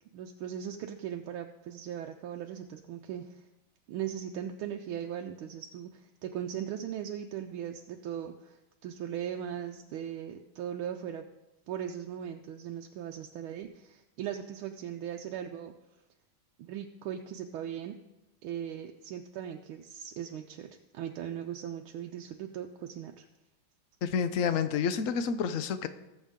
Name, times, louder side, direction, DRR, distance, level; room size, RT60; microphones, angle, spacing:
voice 1, 0.1-3.4 3.9-11.3 11.7-15.7 16.6-18.0 18.4-23.2, right 9 dB, 85° right, 3 dB, 1.5 m, -39 dB
voice 2, 24.0-25.9, left 6 dB, 70° left, 11 dB, 0.7 m, -29 dB
19.5 x 7.2 x 3.7 m, 0.97 s
omnidirectional pair, 2.2 m